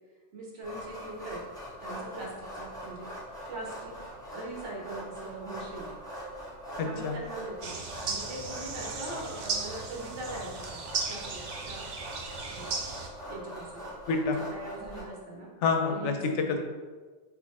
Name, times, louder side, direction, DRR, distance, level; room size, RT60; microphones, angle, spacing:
voice 1, 0.3-1.4 1.8-3.1 3.5-3.9 4.3-5.9 6.8-7.7 8.0-10.8 11.1-11.8 12.5-12.8 13.3-13.8 14.5-15.5 15.9-16.6, right 2 dB, 90° right, -3 dB, 1.3 m, -41 dB
sound 1, 0.6-15.0, equal, 5° left, 1.3 m, -43 dB
voice 2, 6.8-7.2 14.1-14.4 15.6-16.6, left 4 dB, 90° left, 4 dB, 0.9 m, -28 dB
sound 2, 7.6-13.1, right 4 dB, 55° right, 0.5 m, -36 dB
3.7 x 3.4 x 3.2 m, 1.4 s
omnidirectional pair, 1.2 m